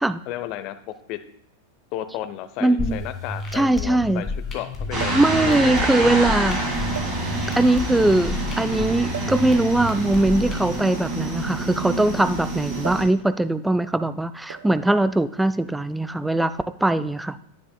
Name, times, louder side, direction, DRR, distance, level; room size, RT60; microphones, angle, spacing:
voice 1, 0.3-0.8 1.1-1.2 1.9-6.3, left 12 dB, 40° left, 11 dB, 0.6 m, -33 dB
sound 1, 1.2-1.3 2.4-2.5 2.8-2.9 4.9-5.4 6.2-6.4 6.9-7.6 9.1-9.4 10.6-12.2 12.8-13.2 13.4-13.7 14.5-14.9 15.8-16.1, right 9 dB, 60° right, 0.6 m, -38 dB
voice 2, 2.6-3.0 3.5-4.2 5.1-6.6 7.6-16.5 16.8-17.4, right 2 dB, 5° right, 14 dB, 0.3 m, -21 dB
sound 2, 2.8-10.8, left 3 dB, 25° left, 2.4 m, -32 dB
sound 3, 4.9-13.0, right 2 dB, 25° right, 2.8 m, -27 dB
10.5 x 9.7 x 2.3 m, 0.75 s
figure-of-eight pair, 90°, 0 cm